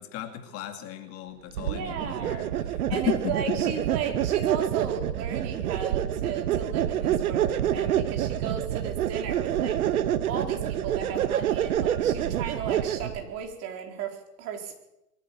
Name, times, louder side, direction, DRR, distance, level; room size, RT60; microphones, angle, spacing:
voice 1, 0.0-3.7, left 11 dB, 30° left, 6 dB, 2.2 m, -35 dB
sound 1, 1.5-13.2, right 11 dB, 60° right, 1.7 m, -27 dB
voice 2, 1.7-2.5 2.9-9.8 10.3-14.8, right 7 dB, 30° right, 3 dB, 4.3 m, -35 dB
23.0 x 14.5 x 8.5 m, 0.90 s
hypercardioid pair, 135°, 48 cm